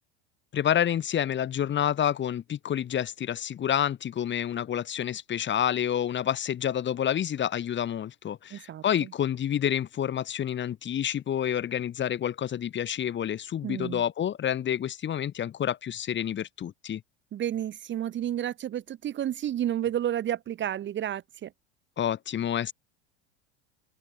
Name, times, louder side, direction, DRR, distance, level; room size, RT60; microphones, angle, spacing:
voice 1, 0.5-17.0 22.0-22.7, left 10 dB, 35° left, 1.8 m, -28 dB
voice 2, 8.5-8.8 13.6-14.0 17.3-21.5, right 11 dB, 35° right, 1.1 m, -31 dB
open air
hypercardioid pair, 80°, 34 cm